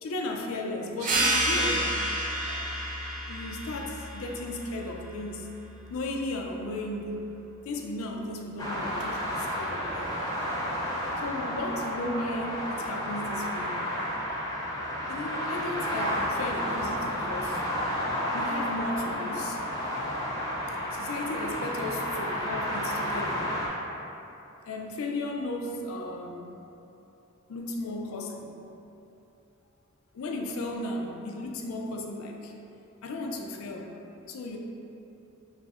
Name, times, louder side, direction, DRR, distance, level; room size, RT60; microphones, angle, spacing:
voice 1, 0.0-1.9 2.5-2.7 3.3-5.5 5.9-7.2 7.6-10.1 11.2-13.8 15.1-17.6 18.3-19.6 20.9-23.5 24.6-26.5 27.5-28.6 30.1-32.5 33.0-34.0 34.3-34.6, left 2 dB, 80° left, 2 dB, 0.4 m, -35 dB
sound 1, 1.0-6.2, right 1 dB, 40° right, 0.4 m, -30 dB
sound 2, 8.6-23.7, equal, 15° left, 0.6 m, -31 dB
6.1 x 2.0 x 2.4 m, 2.9 s
head